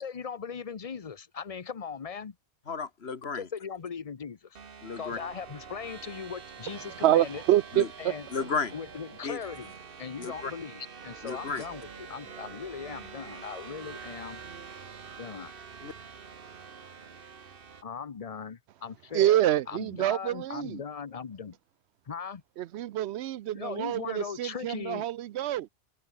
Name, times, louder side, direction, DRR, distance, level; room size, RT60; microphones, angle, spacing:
voice 1, 0.0-2.3 3.3-4.6 5.0-7.4 8.0-8.3 8.7-9.7 10.0-14.4 15.2-15.6 17.8-19.4 19.7-21.6 22.1-22.4 23.5-25.1, left 6 dB, 35° left, 0.8 m, -39 dB
voice 2, 2.7-3.5 4.8-5.2 7.7-7.9 8.3-8.7 9.2-9.4 10.2-10.5 11.2-11.6 15.8-15.9, left 5 dB, 70° left, 1.8 m, -33 dB
sound 1, 4.6-17.8, right 6 dB, 60° right, 1.4 m, -46 dB
voice 3, 7.0-8.1 19.1-20.8 22.6-25.7, right 13 dB, 80° right, 0.8 m, -27 dB
omnidirectional pair, 1.1 m